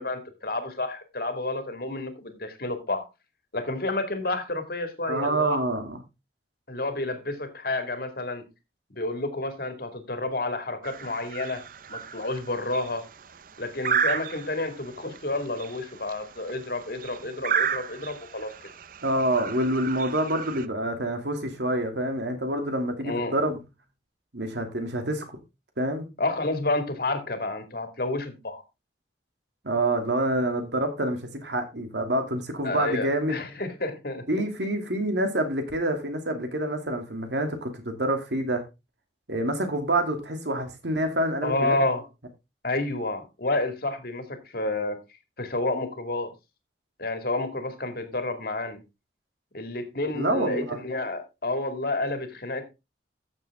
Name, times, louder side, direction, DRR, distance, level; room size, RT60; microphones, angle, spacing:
voice 1, 0.0-3.1 3.5-5.6 6.7-8.4 8.9-11.6 11.9-13.0 13.6-18.5 23.0-23.4 26.2-28.6 32.6-34.3 41.4-42.0 42.6-45.0 45.4-46.3 47.0-48.8 49.5-52.7, left 2 dB, 55° left, 2.3 m, -30 dB
voice 2, 5.0-6.0 19.0-23.6 24.3-25.4 25.8-26.1 29.6-33.4 34.3-38.6 39.3-41.8 50.1-50.8, right 1 dB, 80° right, 2.6 m, -27 dB
sound 1, 10.8-20.7, right 7 dB, 50° right, 0.6 m, -33 dB
13.5 x 7.3 x 3.6 m
head